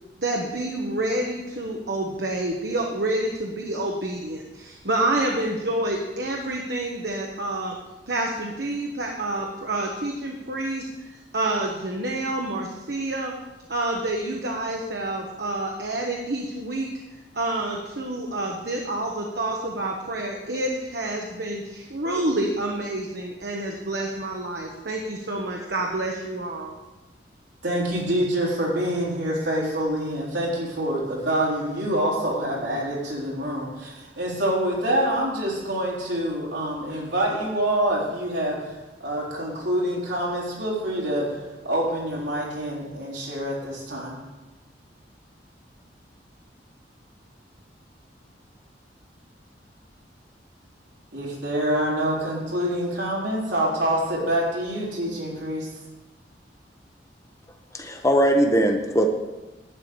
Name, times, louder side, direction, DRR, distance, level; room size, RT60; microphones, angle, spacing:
voice 1, 0.2-7.8 8.1-13.3 13.7-16.9 17.3-26.7, right 1 dB, 65° right, 0 dB, 1.2 m, -28 dB
voice 2, 27.6-38.6 39.0-41.3 41.6-44.2 51.1-55.7, right 1 dB, 80° right, -4 dB, 3.8 m, -26 dB
voice 3, 57.7-59.1, right 1 dB, 15° left, 3 dB, 1.0 m, -20 dB
11.5 x 5.1 x 8.7 m, 1.1 s
head